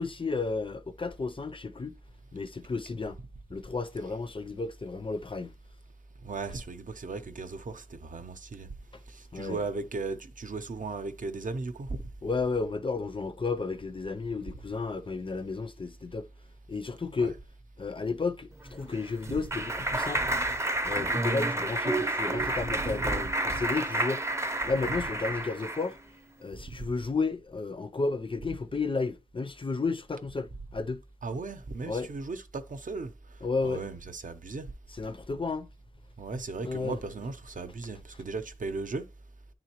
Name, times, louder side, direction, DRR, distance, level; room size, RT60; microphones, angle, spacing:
voice 1, 0.0-2.0 2.3-3.2 3.5-5.5 9.3-9.6 12.2-16.3 16.7-17.4 17.8-20.3 20.8-24.2 24.6-26.0 26.4-31.0 31.9-32.1 33.4-33.8 35.0-35.7 36.6-37.0, left 4 dB, 35° left, 0.4 m, -32 dB
voice 2, 6.2-8.7 9.1-12.0 17.2-17.4 19.3-19.4 20.2-20.4 22.7-23.3 24.9-25.0 31.2-33.1 33.6-34.7 36.2-39.1, right 3 dB, 60° right, 0.6 m, -36 dB
Clapping, 18.7-25.9, right 2 dB, 20° right, 0.6 m, -30 dB
9.7 x 3.7 x 2.9 m
wide cardioid pair, 75°, 15 cm